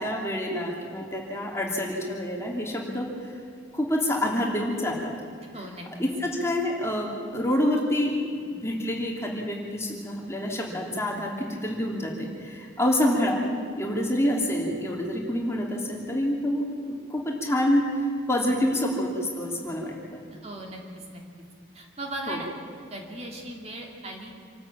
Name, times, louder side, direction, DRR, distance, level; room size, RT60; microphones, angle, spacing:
voice 1, 0.0-3.1 3.7-5.1 6.0-8.1 8.4-13.4 13.8-20.2 22.3-22.4, left 1 dB, 15° left, -1 dB, 3.0 m, -27 dB
voice 2, 5.5-5.9 20.4-20.8 21.1-21.2 21.7-22.5 22.9-24.4, right 1 dB, 35° right, 1 dB, 2.6 m, -37 dB
26.5 x 13.0 x 8.8 m, 2.4 s
head